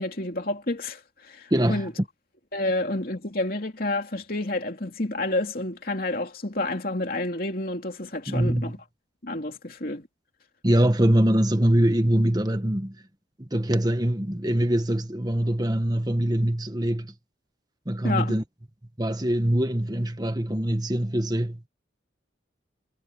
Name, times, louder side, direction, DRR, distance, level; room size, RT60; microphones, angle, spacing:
voice 1, 0.0-1.9 2.5-8.8 9.2-10.1 18.0-18.3, left 2 dB, 50° left, 3.0 m, -29 dB
voice 2, 1.5-1.9 8.3-8.7 10.6-12.9 13.4-17.1 17.8-18.4 19.0-21.6, right 1 dB, 20° right, 1.4 m, -23 dB
head